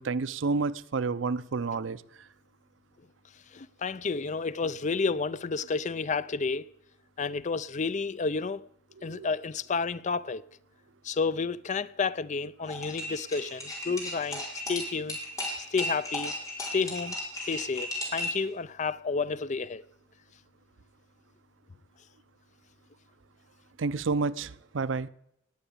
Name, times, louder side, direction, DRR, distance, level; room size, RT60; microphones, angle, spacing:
voice 1, 0.0-2.0 9.0-9.3 23.8-25.1, right 4 dB, 80° right, 0.6 m, -30 dB
voice 2, 3.5-6.6 7.2-8.6 9.0-10.4 11.0-15.2 15.7-16.3 16.6-17.2 17.5-19.8, left 4 dB, 40° left, 0.5 m, -31 dB
sound 1, 12.6-18.4, left 1 dB, 20° left, 4.5 m, -35 dB
19.0 x 8.1 x 8.5 m
head